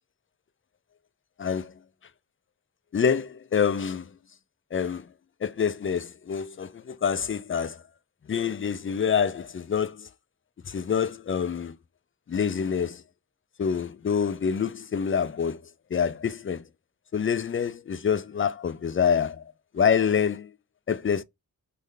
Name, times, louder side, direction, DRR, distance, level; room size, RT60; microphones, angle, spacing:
voice 1, 1.4-1.8 2.9-4.1 4.7-5.1 5.4-7.8 8.3-10.1 10.6-11.8 12.3-13.0 13.6-15.6 15.9-16.7 17.1-19.4 19.7-20.5 20.9-21.2, left 7 dB, 35° left, 0.4 m, -26 dB
3.2 x 2.6 x 3.8 m
wide cardioid pair, 60°, 37 cm